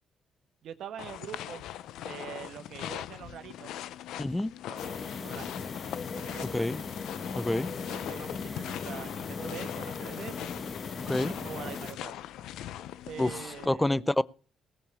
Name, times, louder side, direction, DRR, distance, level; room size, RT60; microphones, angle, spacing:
voice 1, 0.6-1.6 2.0-3.7 4.7-5.7 6.1-6.6 7.8-10.5 11.0-12.2 13.1-14.0, right 9 dB, 70° right, 1.3 m, -44 dB
sound 1, 1.0-13.7, left 12 dB, 85° left, 0.6 m, -42 dB
voice 2, 4.2-4.5 6.5-6.8 7.3-7.7 11.1-11.4 13.2-14.2, left 1 dB, 10° left, 0.6 m, -28 dB
sound 2, 4.8-11.9, left 5 dB, 50° left, 1.3 m, -38 dB
18.5 x 6.7 x 6.9 m
cardioid pair, 90°, 0 cm